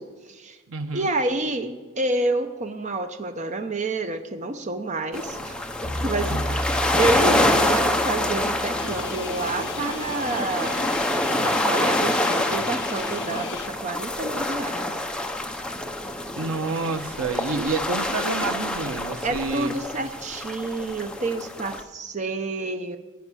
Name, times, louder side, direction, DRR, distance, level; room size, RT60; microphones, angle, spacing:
voice 1, 0.0-0.6 0.9-5.6 6.0-10.8 11.4-14.9 19.2-23.0, right 2 dB, 35° right, 8 dB, 0.7 m, -29 dB
voice 2, 0.7-1.1 6.3-6.4 16.4-19.7, right 3 dB, 85° right, 8 dB, 0.9 m, -29 dB
sound 1, 5.1-21.8, left 1 dB, 5° left, 0.7 m, -26 dB
sound 2, 5.8-11.2, equal, 25° left, 4.1 m, -35 dB
Guitar, 8.8-13.7, left 6 dB, 60° left, 0.6 m, -39 dB
15.0 x 5.9 x 9.8 m, 1.3 s
head